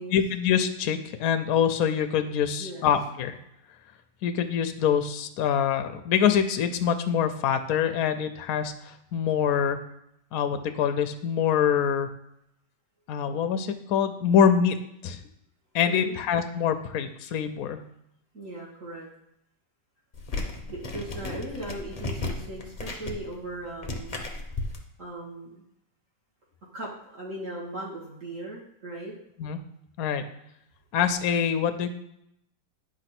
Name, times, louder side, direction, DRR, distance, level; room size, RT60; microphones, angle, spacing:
voice 1, 0.1-3.4 4.2-9.8 10.3-12.1 13.1-14.8 15.0-15.2 15.7-17.8 29.4-29.6 30.0-30.2 30.9-31.9, left 8 dB, 70° left, 8 dB, 0.9 m, -25 dB
voice 2, 2.2-2.9 15.9-16.2 18.3-19.1 20.7-24.2 25.0-25.6 26.7-29.1, right 1 dB, 45° right, -5 dB, 2.4 m, -38 dB
sound 1, 20.1-24.8, left 2 dB, 45° left, 0.4 m, -34 dB
9.4 x 3.2 x 5.9 m, 0.80 s
omnidirectional pair, 1.9 m